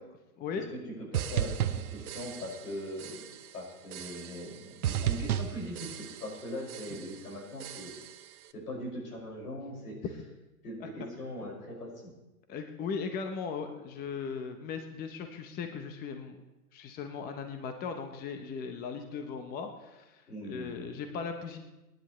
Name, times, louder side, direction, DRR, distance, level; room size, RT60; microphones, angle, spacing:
voice 1, 0.4-0.7 10.8-10.9 12.5-16.4 16.7-21.6, left 5 dB, 20° left, 6 dB, 0.9 m, -38 dB
voice 2, 1.1-3.3 3.5-7.9 8.5-10.0 10.6-12.1 20.3-20.9, equal, 90° left, -2 dB, 5.9 m, -41 dB
sound 1, 1.1-2.7 3.0-3.5 3.9-4.5 4.8-6.4 6.7-7.2 7.6-8.2, right 10 dB, 75° right, 0.9 m, -34 dB
25.5 x 10.5 x 3.2 m, 1.0 s
hypercardioid pair, 135°, 45 cm